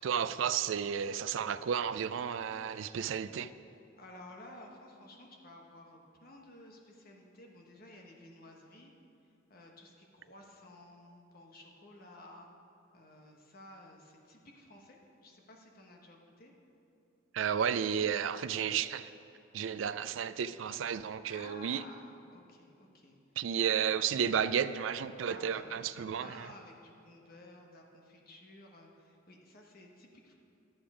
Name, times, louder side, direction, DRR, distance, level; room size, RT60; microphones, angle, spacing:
voice 1, 0.0-3.5 17.3-19.1 19.5-21.8 23.4-26.5, right 8 dB, 75° right, 13 dB, 0.4 m, -32 dB
voice 2, 4.0-8.9 9.5-12.5 12.9-16.5 21.3-23.2 23.6-23.7 25.2-30.3, left 1 dB, 50° left, 0 dB, 1.3 m, -54 dB
11.5 x 8.8 x 4.9 m, 2.7 s
head